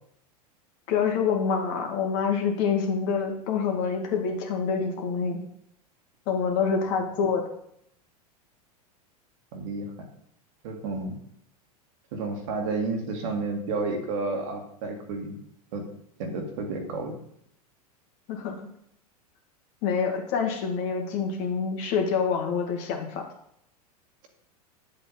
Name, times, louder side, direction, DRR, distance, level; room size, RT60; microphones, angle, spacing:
voice 1, 0.9-5.4 6.3-7.5 18.3-18.7 19.8-23.2, left 6 dB, 45° left, 2 dB, 2.1 m, -26 dB
voice 2, 6.6-7.2 9.5-9.9 10.6-11.1 12.1-15.4 15.7-15.9 16.2-17.1, right 3 dB, 50° right, 3 dB, 2.1 m, -31 dB
9.6 x 7.5 x 4.2 m, 0.71 s
figure-of-eight pair, 90°, 20 cm